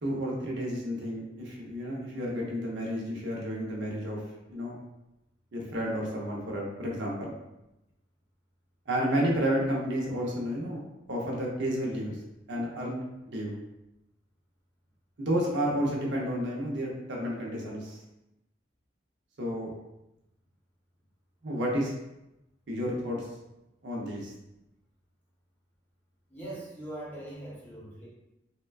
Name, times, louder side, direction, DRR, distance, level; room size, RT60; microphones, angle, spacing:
voice 1, 0.0-4.2 4.5-4.8 5.5-7.3 8.9-10.8 11.1-12.2 12.5-13.6 15.2-18.0 19.4-19.7 21.4-21.9 22.7-23.3 23.8-24.3, equal, 70° right, -3 dB, 0.7 m, -31 dB
voice 2, 26.3-28.1, right 1 dB, 10° left, -7 dB, 0.8 m, -41 dB
3.5 x 2.2 x 2.3 m, 0.91 s
head